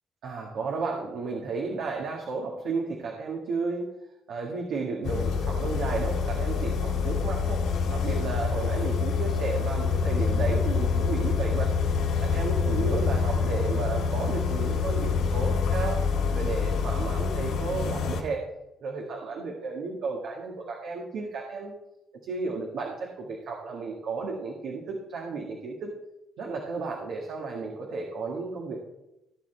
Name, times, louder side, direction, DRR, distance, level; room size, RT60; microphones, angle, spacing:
voice 1, 0.2-3.9 4.3-7.6 7.9-11.7 12.2-16.0 16.3-18.4 18.8-21.7 22.2-25.9 26.4-28.9, right 4 dB, 75° right, -1 dB, 1.9 m, -33 dB
sound 1, 5.0-18.2, left 5 dB, 85° left, 3.3 m, -26 dB
17.0 x 8.0 x 3.5 m, 0.91 s
cardioid pair, 90°, 0 cm